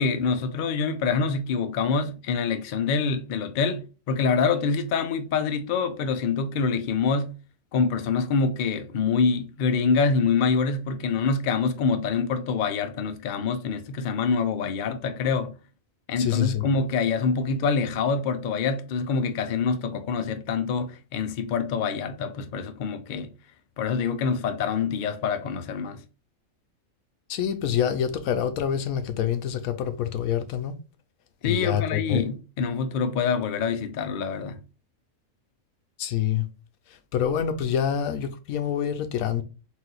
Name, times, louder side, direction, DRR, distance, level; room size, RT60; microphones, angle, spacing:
voice 1, 0.0-7.3 7.7-15.5 16.1-23.3 23.8-26.0 31.4-34.6, left 5 dB, 65° left, 0.4 m, -25 dB
voice 2, 16.2-16.6 27.3-30.8 31.4-32.3 36.0-36.5 36.9-39.4, left 9 dB, 85° left, 1.1 m, -26 dB
4.1 x 2.5 x 3.8 m
omnidirectional pair, 1.4 m